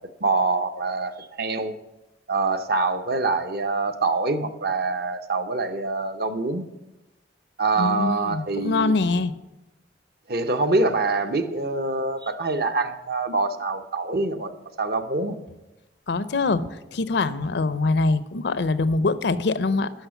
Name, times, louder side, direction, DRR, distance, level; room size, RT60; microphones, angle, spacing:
voice 1, 0.2-1.8 2.3-6.6 7.6-8.9 10.3-14.5 14.8-15.4, right 3 dB, 55° right, 8 dB, 0.8 m, -25 dB
voice 2, 7.8-9.3 16.1-16.6 16.9-19.9, left 3 dB, 70° left, 14 dB, 0.5 m, -23 dB
11.5 x 6.3 x 7.0 m, 1.0 s
head